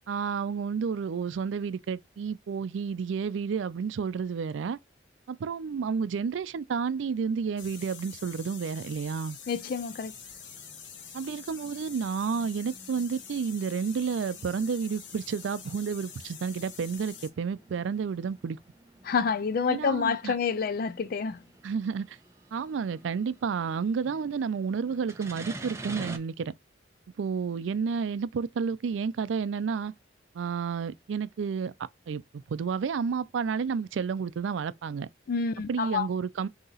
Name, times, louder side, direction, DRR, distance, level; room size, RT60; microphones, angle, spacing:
voice 1, 0.1-4.8 5.3-9.4 11.1-18.6 19.7-20.4 21.6-22.2 22.5-26.5 27.2-29.9 30.3-31.7 32.1-32.2 32.5-35.1 35.7-36.5, right 6 dB, 85° right, 0.4 m, -31 dB
sound 1, 7.6-17.3, left 7 dB, 75° left, 0.8 m, -46 dB
sound 2, 9.3-26.2, right 2 dB, 15° right, 0.6 m, -49 dB
voice 2, 9.5-10.1 19.0-21.4 35.3-36.1, left 5 dB, 50° left, 0.4 m, -28 dB
3.9 x 2.8 x 3.9 m
head